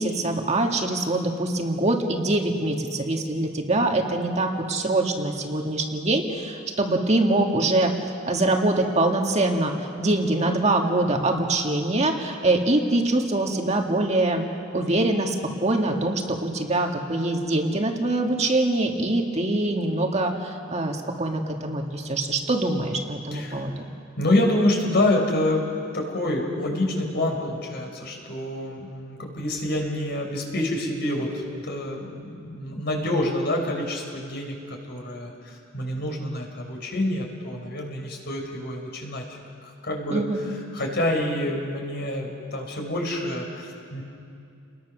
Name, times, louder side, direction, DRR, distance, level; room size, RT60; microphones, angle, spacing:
voice 1, 0.0-7.9 8.3-14.4 14.7-23.9 40.1-40.4, right 2 dB, 35° right, 2 dB, 1.8 m, -24 dB
voice 2, 23.3-23.7 24.2-44.0, left 1 dB, 55° left, 1 dB, 4.3 m, -27 dB
29.5 x 20.5 x 6.3 m, 2.5 s
head